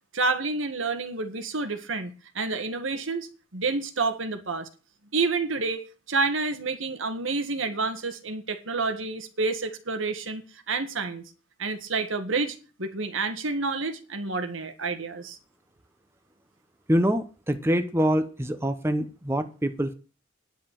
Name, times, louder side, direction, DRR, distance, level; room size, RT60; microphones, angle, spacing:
voice 1, 0.1-4.7 5.1-10.4 10.7-11.2 11.6-15.4, right 3 dB, 80° right, 1.8 m, -29 dB
voice 2, 16.9-19.9, equal, 15° right, 1.0 m, -25 dB
10.5 x 6.8 x 9.0 m
head